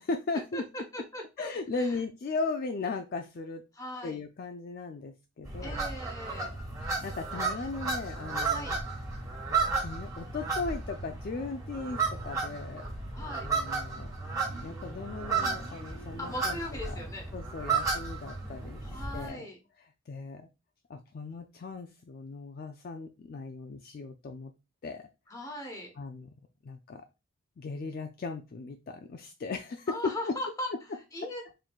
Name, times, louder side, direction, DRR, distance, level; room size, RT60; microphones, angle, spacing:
voice 1, 0.0-0.6 1.4-3.6 4.0-5.8 6.8-8.7 9.8-12.8 13.4-14.1 14.4-16.6 16.9-17.0 17.3-19.5 19.8-20.5 20.9-24.5 24.8-25.1 26.0-26.3 26.6-27.0 27.6-30.3, left 3 dB, 45° left, 5 dB, 0.3 m, -37 dB
voice 2, 0.5-1.5 1.8-2.0 3.7-4.2 5.6-6.5 8.5-8.8 13.1-13.5 16.2-17.3 18.8-19.6 25.3-25.9 29.9-30.7 31.1-31.4, left 1 dB, 15° left, 2 dB, 1.0 m, -39 dB
sound 1, 5.4-19.3, right 4 dB, 15° right, 1.3 m, -33 dB
4.4 x 3.7 x 2.3 m, 0.27 s
head